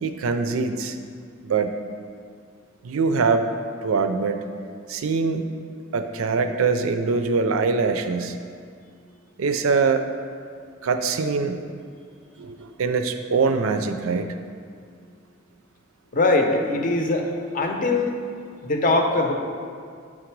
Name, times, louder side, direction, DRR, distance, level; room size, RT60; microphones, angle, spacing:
voice 1, 0.0-1.0 1.4-1.7 2.8-3.5 3.8-4.4 4.9-5.4 5.9-8.3 9.4-10.1 10.8-11.6 12.4-14.3, right 4 dB, 80° right, 8 dB, 0.4 m, -23 dB
voice 2, 16.1-17.3 17.5-18.2 18.6-19.3, left 2 dB, 40° left, 3 dB, 0.6 m, -21 dB
7.5 x 3.8 x 4.6 m, 2.2 s
head